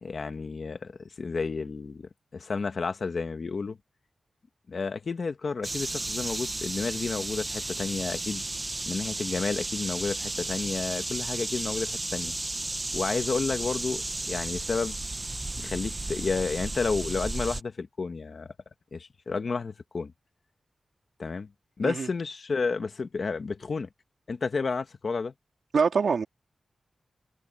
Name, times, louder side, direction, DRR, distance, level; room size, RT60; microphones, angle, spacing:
voice 1, 0.0-3.8 4.7-8.4 8.9-12.3 12.9-14.9 15.6-18.5 18.9-20.1 21.2-21.5 21.8-23.9 24.3-25.3, left 4 dB, 50° left, 1.4 m, -31 dB
sound 1, 5.6-17.6, right 2 dB, 20° right, 1.0 m, -33 dB
voice 2, 25.7-26.2, right 5 dB, 70° right, 2.8 m, -24 dB
wide cardioid pair, 135°, 0 cm